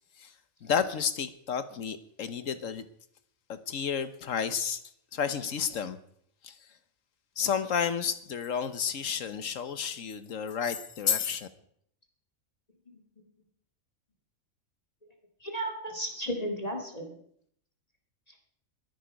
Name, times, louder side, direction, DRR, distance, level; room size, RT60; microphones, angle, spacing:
voice 1, 0.6-2.8 3.5-4.8 5.1-6.0 6.4-6.6 7.4-11.5, left 7 dB, 70° left, 12 dB, 1.4 m, -31 dB
voice 2, 12.9-13.3 15.4-17.2 18.3-18.4, right 1 dB, 30° left, 2 dB, 2.2 m, -35 dB
21.5 x 9.3 x 5.2 m, 0.68 s
omnidirectional pair, 1.4 m